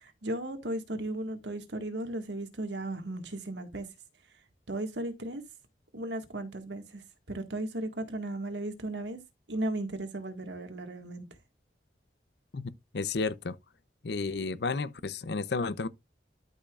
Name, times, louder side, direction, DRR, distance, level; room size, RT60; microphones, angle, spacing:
voice 1, 0.0-3.9 4.7-5.4 5.9-7.0 7.3-9.2 9.5-11.3, right 1 dB, 80° right, 1.7 m, -35 dB
voice 2, 12.9-13.5 14.0-15.9, left 4 dB, 70° left, 0.6 m, -32 dB
12.5 x 5.7 x 2.4 m
head